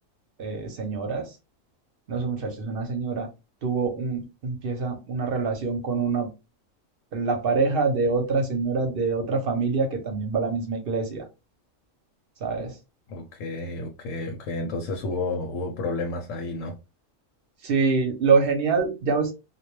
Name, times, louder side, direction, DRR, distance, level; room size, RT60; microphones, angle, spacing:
voice 1, 0.4-1.3 2.1-3.3 3.6-6.3 7.1-11.3 12.4-12.8 17.6-19.3, right 4 dB, 55° right, 0.8 m, -25 dB
voice 2, 13.1-16.7, left 2 dB, 80° left, 0.9 m, -31 dB
2.2 x 2.2 x 3.0 m
omnidirectional pair, 1.3 m